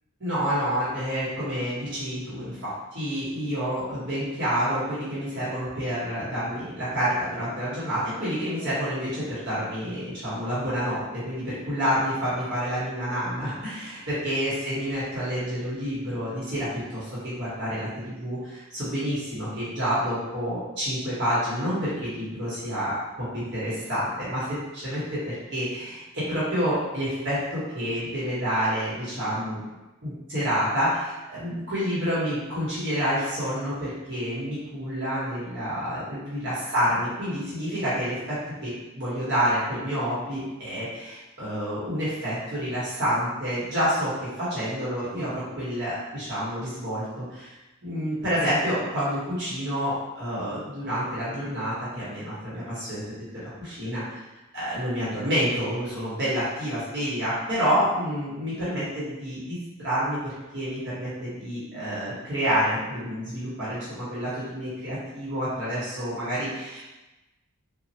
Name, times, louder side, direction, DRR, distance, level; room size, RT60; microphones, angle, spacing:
voice 1, 0.2-29.7 30.0-47.5 47.8-53.0 53.3-54.2 54.5-66.8, equal, 55° right, -10 dB, 1.2 m, -28 dB
3.1 x 2.4 x 2.8 m, 1.0 s
head